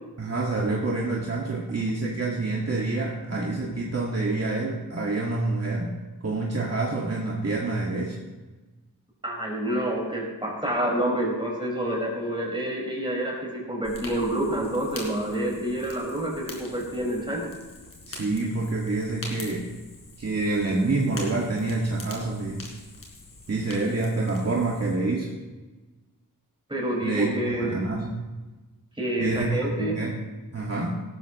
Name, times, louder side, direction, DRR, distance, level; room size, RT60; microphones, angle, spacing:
voice 1, 0.2-5.9 6.2-8.2 18.1-19.7 20.2-22.7 23.5-25.3 27.0-28.2 29.2-30.2 30.5-31.0, right 2 dB, 45° right, -3 dB, 1.8 m, -27 dB
voice 2, 9.2-17.5 23.8-23.9 26.7-27.8 29.0-30.0, right 1 dB, 15° right, -2 dB, 4.9 m, -28 dB
Fire, 13.8-24.9, left 2 dB, 70° left, 4.1 m, -43 dB
18.0 x 13.5 x 3.0 m, 1.2 s
wide cardioid pair, 140°, 35 cm